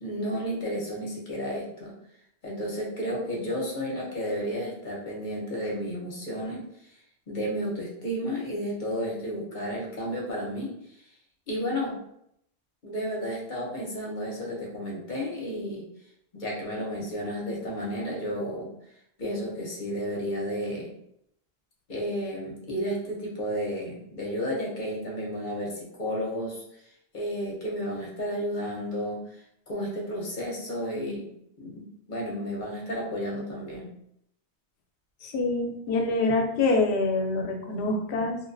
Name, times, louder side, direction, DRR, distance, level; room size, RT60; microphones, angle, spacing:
voice 1, 0.0-1.9 2.4-6.6 7.3-10.7 11.5-12.0 12.8-15.8 16.3-18.7 19.2-20.9 21.9-26.6 27.1-29.4 29.7-31.3 31.6-33.9, equal, 50° left, -4 dB, 0.8 m, -32 dB
voice 2, 35.2-38.4, left 3 dB, 85° left, 2 dB, 0.8 m, -25 dB
2.4 x 2.2 x 2.5 m, 0.75 s
omnidirectional pair, 1.1 m